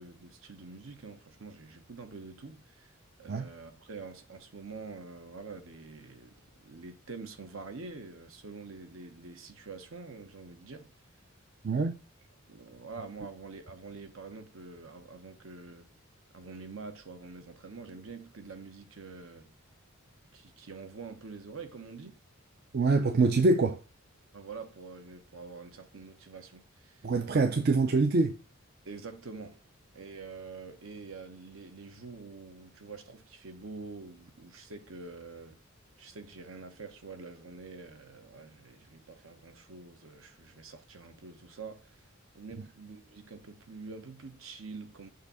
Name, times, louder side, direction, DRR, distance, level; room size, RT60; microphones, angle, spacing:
voice 1, 0.0-10.9 12.5-15.9 16.3-19.5 20.3-22.2 24.3-27.1 28.8-29.6 29.9-35.6 36.0-42.1 42.3-45.1, right 4 dB, 65° right, 0.9 m, -46 dB
voice 2, 11.6-12.0 22.7-23.8 27.0-28.4, right 3 dB, 45° right, 0.5 m, -25 dB
6.6 x 2.7 x 5.4 m
head